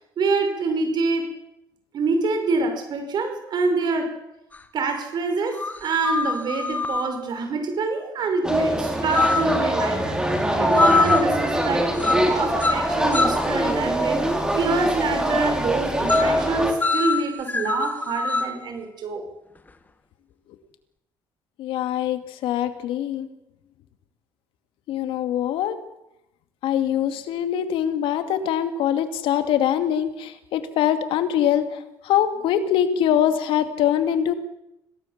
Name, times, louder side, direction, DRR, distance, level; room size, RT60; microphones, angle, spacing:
voice 1, 0.2-1.3 1.9-4.1 4.7-10.2 10.6-14.3 14.6-19.2, right 3 dB, 55° right, 6 dB, 5.5 m, -26 dB
sound 1, 4.5-4.6 5.6-7.1 9.1-9.6 10.8-11.3 12.0-12.3 12.6-13.5 16.1-16.4 16.8-18.6, left 3 dB, 20° left, 1.8 m, -23 dB
sound 2, 8.4-16.7, equal, 10° right, 4.6 m, -23 dB
voice 2, 21.6-23.3 24.9-25.8 26.6-31.6 32.0-34.3, left 10 dB, 80° left, 9 dB, 2.4 m, -23 dB
26.0 x 18.0 x 7.4 m, 0.88 s
cardioid pair, 110°, 9 cm